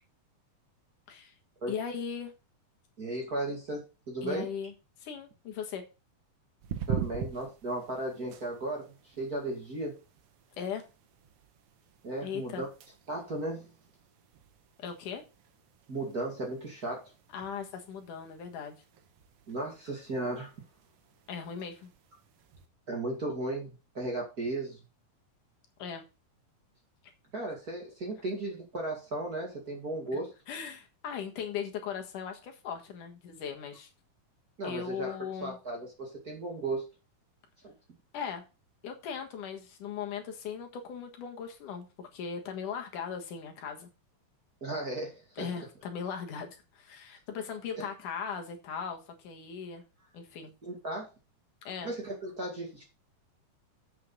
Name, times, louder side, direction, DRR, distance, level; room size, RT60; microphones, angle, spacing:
voice 1, 1.7-2.3 4.2-4.7 5.0-5.8 10.6-10.9 12.2-12.6 14.8-15.2 17.3-18.8 21.3-21.9 25.8-26.0 30.5-33.9 34.6-35.6 38.1-38.4 38.8-43.9 45.4-49.8 50.1-50.5 51.6-51.9, left 7 dB, 70° left, 3 dB, 2.9 m, -38 dB
voice 2, 3.0-4.5 6.9-10.0 12.0-12.7 13.1-13.7 15.9-17.1 19.5-20.5 22.9-24.8 27.3-30.3 34.6-35.1 35.4-36.9 37.6-37.7 44.6-45.5 47.8-47.9 50.6-51.1 51.8-52.8, right 2 dB, 30° right, 0 dB, 2.3 m, -35 dB
sound 1, 6.6-22.7, right 8 dB, 70° right, 1.4 m, -44 dB
8.0 x 6.5 x 5.4 m, 0.30 s
omnidirectional pair, 3.9 m